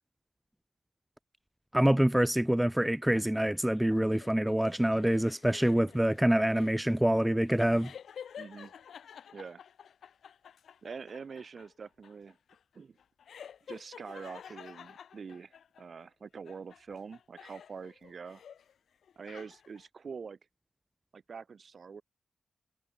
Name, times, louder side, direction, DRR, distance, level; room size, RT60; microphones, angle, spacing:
voice 1, 1.7-7.9, right 1 dB, 5° right, 0.7 m, -26 dB
sound 1, 3.1-16.1 16.5-18.7 19.0-19.9, left 8 dB, 85° left, 3.4 m, -51 dB
voice 2, 8.4-8.7 9.3-9.6 10.8-12.4 12.7-13.0 13.7-18.4 19.2-20.4 21.1-22.0, right 5 dB, 60° right, 5.5 m, -45 dB
cardioid pair, 65°, 0 cm